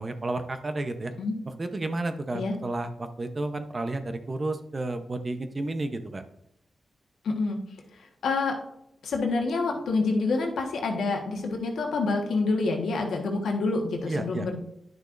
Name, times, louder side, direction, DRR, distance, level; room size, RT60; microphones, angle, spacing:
voice 1, 0.0-1.1 1.5-6.2 14.1-14.5, right 2 dB, 40° right, 8 dB, 0.8 m, -31 dB
voice 2, 7.2-7.6 8.2-8.6 9.0-14.6, left 3 dB, 85° left, 2 dB, 1.3 m, -27 dB
10.0 x 6.2 x 2.6 m, 0.77 s
cardioid pair, 55°, 0 cm